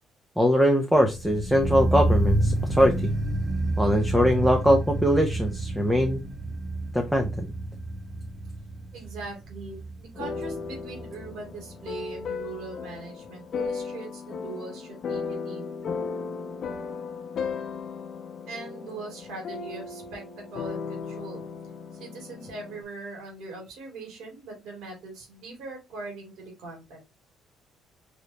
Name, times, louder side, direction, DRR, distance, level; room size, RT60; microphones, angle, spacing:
voice 1, 0.4-3.1 3.8-6.2 6.9-7.5, equal, 5° right, 3 dB, 0.7 m, -22 dB
sound 1, 1.0-11.9 12.2-12.3, right 1 dB, 25° right, 1.7 m, -29 dB
voice 2, 8.9-15.7 18.5-20.2 20.5-21.5 21.9-27.0, right 3 dB, 80° right, 0 dB, 2.7 m, -41 dB
sound 2, 10.2-22.8, left 5 dB, 45° left, 0.9 m, -36 dB
5.2 x 3.2 x 2.8 m, 0.25 s
cardioid pair, 130°, 0 cm